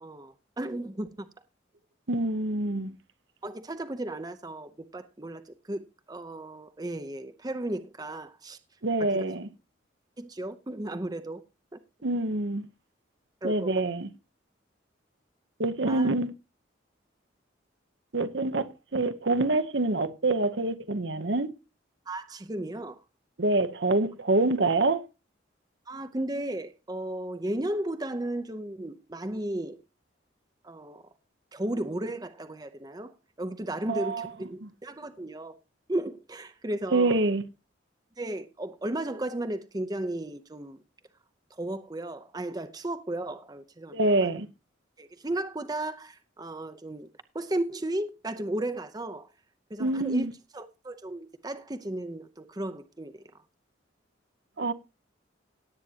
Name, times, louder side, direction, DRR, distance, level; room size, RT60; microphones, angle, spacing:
voice 1, 0.0-1.3 3.4-8.6 9.0-9.2 10.2-11.4 11.7-11.8 13.4-13.7 15.9-16.1 22.1-23.0 25.9-29.8 30.6-31.0 31.5-33.1 33.4-35.5 35.9-37.2 38.2-40.8 41.6-44.3 45.0-47.1 47.3-49.3 49.7-50.3 50.5-53.1, right 1 dB, 20° right, 0.7 m, -34 dB
voice 2, 2.1-2.9 8.8-9.5 12.0-12.7 13.4-14.1 15.6-16.3 18.1-21.5 23.4-25.1 33.9-34.3 34.6-34.7 36.9-37.4 43.9-44.5 49.8-50.3 54.6-54.7, right 2 dB, 65° right, 0.9 m, -26 dB
18.0 x 8.5 x 2.9 m
head